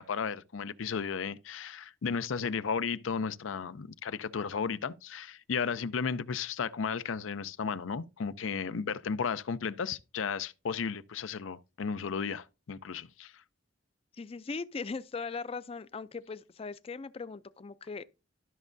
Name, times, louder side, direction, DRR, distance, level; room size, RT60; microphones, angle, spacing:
voice 1, 0.0-13.3, left 6 dB, 85° left, 0.5 m, -34 dB
voice 2, 14.1-18.1, left 4 dB, 30° left, 0.4 m, -39 dB
13.0 x 6.2 x 2.6 m
head